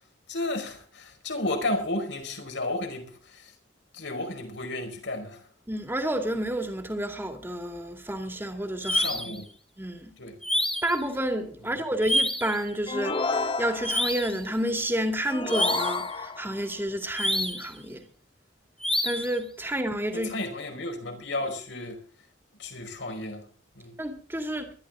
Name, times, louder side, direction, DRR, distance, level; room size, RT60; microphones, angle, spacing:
voice 1, 0.3-3.5 3.9-5.4 8.9-9.5 10.2-10.4 11.6-11.8 20.1-22.0 22.6-23.5 23.7-24.0, left 2 dB, 75° left, 5.0 m, -33 dB
voice 2, 5.7-9.2 9.8-10.1 10.8-18.1 19.0-20.3 24.0-24.7, right 1 dB, 10° right, 2.4 m, -30 dB
sound 1, 8.8-9.4 10.4-11.0 12.0-12.6 13.8-14.4 15.5-16.1 17.2-17.7 18.8-19.4, equal, 5° left, 1.9 m, -27 dB
sound 2, 12.9-14.2 15.3-16.6, left 3 dB, 30° left, 0.8 m, -30 dB
21.5 x 13.0 x 3.8 m
head